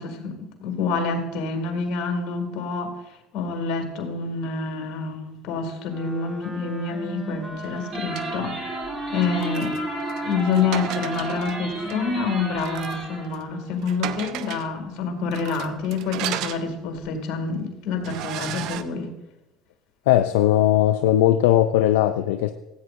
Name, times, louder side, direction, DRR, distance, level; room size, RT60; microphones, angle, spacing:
voice 1, 0.0-2.9 3.3-8.7 9.1-9.8 10.2-19.2, left 4 dB, 65° left, 4 dB, 2.0 m, -27 dB
Wind instrument woodwind instrument, 5.9-13.9, right 1 dB, 5° right, 1.6 m, -35 dB
sound 1, 7.6-8.3 9.2-11.6 11.9-12.0 12.6-13.0 13.3-13.5 13.8-14.7 15.3-17.1 17.5-17.6 18.0-18.8, right 12 dB, 65° right, 0.5 m, -34 dB
sound 2, 7.9-13.3, right 2 dB, 45° right, 3.1 m, -34 dB
voice 2, 20.1-22.5, left 12 dB, 90° left, 9 dB, 0.4 m, -18 dB
15.5 x 8.4 x 2.5 m, 0.96 s
supercardioid pair, 100°, 0 cm